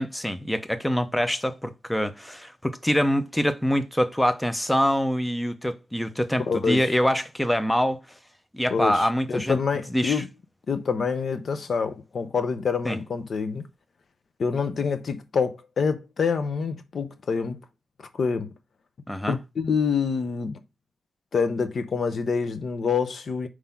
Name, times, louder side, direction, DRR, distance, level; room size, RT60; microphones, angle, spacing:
voice 1, 0.0-8.0 8.5-9.6 9.9-10.2 12.9-13.0 19.1-19.4, equal, 5° left, 0.7 m, -25 dB
voice 2, 6.5-6.9 8.7-10.3 10.7-13.7 14.4-17.6 18.2-18.5 19.3-20.6 21.3-23.5, left 5 dB, 60° left, 0.7 m, -26 dB
4.8 x 3.8 x 5.7 m
cardioid pair, 100°, 0 cm